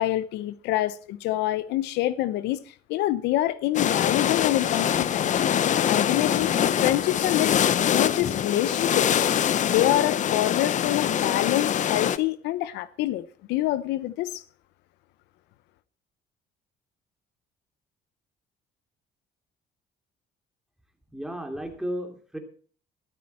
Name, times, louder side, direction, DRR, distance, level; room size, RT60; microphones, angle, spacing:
voice 1, 0.0-2.6 2.9-5.5 5.9-7.6 7.8-9.2 9.6-14.4, left 14 dB, 85° left, 0.7 m, -26 dB
sound 1, 3.7-12.2, left 9 dB, 45° left, 0.7 m, -24 dB
voice 2, 21.1-22.4, equal, 5° right, 2.8 m, -33 dB
13.0 x 13.0 x 4.2 m
cardioid pair, 110°, 17 cm